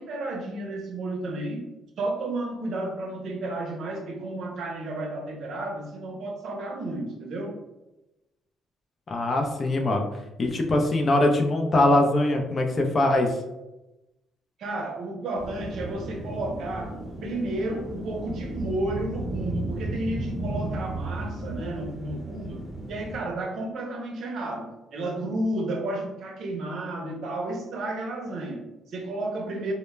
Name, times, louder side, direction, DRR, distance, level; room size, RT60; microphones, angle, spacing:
voice 1, 0.0-1.7 2.0-7.6 14.6-29.7, right 2 dB, 70° right, 2 dB, 0.5 m, -32 dB
voice 2, 9.1-10.1 10.4-13.3, left 1 dB, 40° left, 3 dB, 0.5 m, -22 dB
sound 1, 15.4-23.2, right 1 dB, ahead, 0.9 m, -34 dB
2.1 x 2.0 x 3.1 m, 0.99 s
cardioid pair, 80°, 0 cm